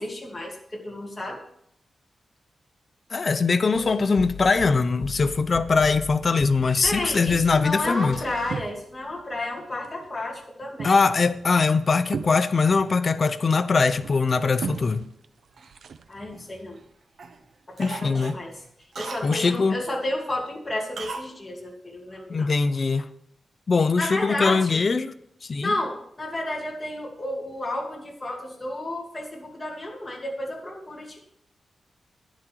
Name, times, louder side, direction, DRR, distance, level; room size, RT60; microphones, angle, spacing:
voice 1, 0.0-1.4 6.8-11.0 16.1-16.8 17.7-18.5 19.0-22.5 24.0-24.8 25.6-31.2, left 1 dB, 15° left, 2.6 m, -32 dB
voice 2, 3.1-8.2 10.8-15.0 17.8-18.3 19.2-19.8 22.3-23.1 23.7-25.1 25.4-25.7, left 4 dB, 40° left, 0.6 m, -22 dB
sound 1, 3.7-9.2, left 4 dB, 70° left, 2.1 m, -39 dB
sound 2, 7.4-9.1 9.4-10.1 10.4-16.4, right 5 dB, 75° right, 0.6 m, -39 dB
Cough, 15.6-16.8 17.2-17.4 17.8-19.6 21.0-21.3 21.6-21.7, right 4 dB, 60° right, 1.0 m, -38 dB
11.5 x 10.5 x 4.7 m
wide cardioid pair, 160°, 0 cm